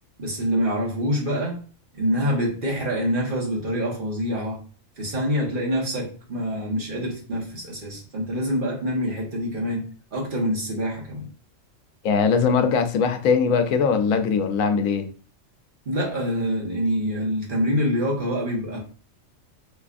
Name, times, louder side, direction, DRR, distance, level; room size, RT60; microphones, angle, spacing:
voice 1, 0.2-1.6 1.9-4.6 5.0-11.3 15.8-18.8, equal, 45° right, 1.2 m, -26 dB
voice 2, 12.0-15.1, left 5 dB, 85° left, 1.0 m, -21 dB
4.4 x 2.4 x 2.4 m
omnidirectional pair, 1.4 m